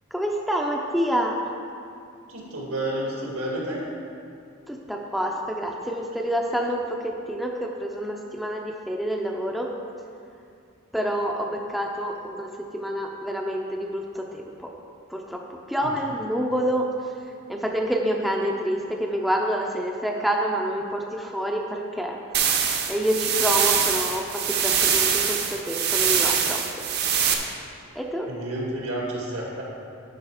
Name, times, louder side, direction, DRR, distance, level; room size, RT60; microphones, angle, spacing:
voice 1, 0.1-1.4 4.7-9.7 10.9-14.4 15.1-15.4 15.7-16.8 17.5-22.6 22.9-26.6 28.0-28.3, equal, ahead, 0 dB, 0.5 m, -27 dB
voice 2, 2.3-3.8 15.8-15.9 28.3-29.6, right 1 dB, 85° right, -3 dB, 2.2 m, -30 dB
sound 1, 22.3-27.3, right 7 dB, 50° right, 0.8 m, -23 dB
11.5 x 5.0 x 5.0 m, 2.4 s
head